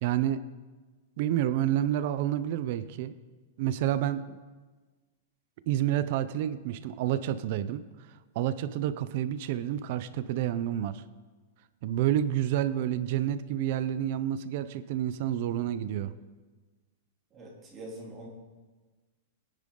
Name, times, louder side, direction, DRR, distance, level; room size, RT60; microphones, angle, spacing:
voice 1, 0.0-0.4 1.2-3.1 3.6-4.4 5.7-7.8 8.3-11.0 11.8-16.1, right 11 dB, 45° right, 13 dB, 0.6 m, -29 dB
voice 2, 17.3-18.3, right 1 dB, 15° right, -3 dB, 3.0 m, -44 dB
22.0 x 9.9 x 3.8 m, 1.3 s
supercardioid pair, 170°, 0 cm